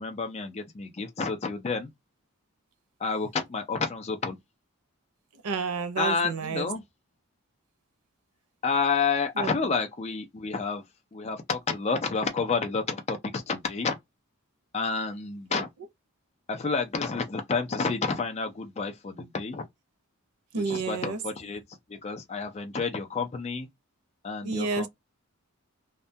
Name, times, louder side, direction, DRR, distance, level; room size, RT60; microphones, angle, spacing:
voice 1, 0.0-1.9 3.0-4.4 6.0-6.8 8.6-10.8 11.1-14.0 14.7-15.7 16.5-19.6 20.7-21.6 21.9-23.7 24.2-24.9, left 4 dB, 30° left, 0.4 m, -29 dB
voice 2, 5.3-6.7 9.3-9.6 15.5-15.6 20.5-21.2 24.4-24.9, right 4 dB, 90° right, 0.6 m, -30 dB
2.3 x 2.2 x 2.7 m
head